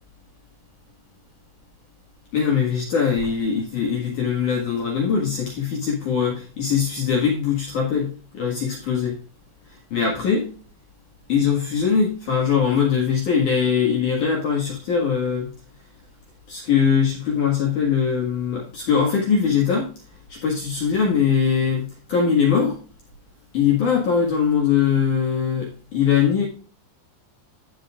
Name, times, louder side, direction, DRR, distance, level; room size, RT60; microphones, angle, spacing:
voice 1, 2.3-9.2 9.7-10.5 11.3-15.5 16.5-19.9 20.3-22.8 23.5-26.5, left 7 dB, 55° left, -2 dB, 2.5 m, -21 dB
16.0 x 5.5 x 2.4 m, 0.37 s
omnidirectional pair, 5.3 m